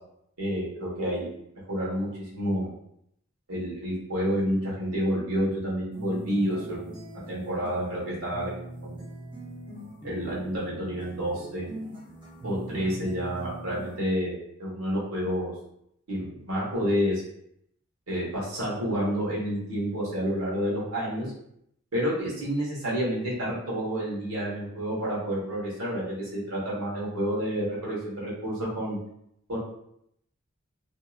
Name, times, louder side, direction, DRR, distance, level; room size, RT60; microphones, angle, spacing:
voice 1, 0.4-1.2 1.7-2.7 3.5-7.0 7.3-8.5 8.8-9.0 10.0-11.6 12.4-15.5 16.1-17.2 18.1-21.3 21.9-29.0 29.5-29.6, equal, 85° right, -6 dB, 1.2 m, -29 dB
sound 1, 5.9-14.0, right 1 dB, 20° right, 0.8 m, -42 dB
2.7 x 2.7 x 2.4 m, 0.74 s
head